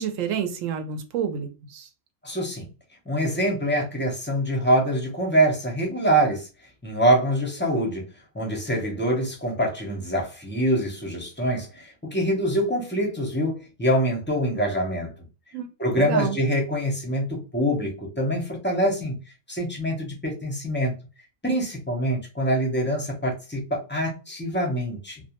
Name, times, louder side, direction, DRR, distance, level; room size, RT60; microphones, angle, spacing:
voice 1, 0.0-1.9 15.5-15.7 15.9-16.4, right 8 dB, 80° right, 7 dB, 1.0 m, -29 dB
voice 2, 2.2-2.6 3.1-6.5 6.8-8.1 8.3-15.1 15.8-19.2 19.5-20.9 21.4-25.2, right 1 dB, 15° left, 0 dB, 0.4 m, -25 dB
2.3 x 2.2 x 2.8 m, 0.31 s
omnidirectional pair, 1.3 m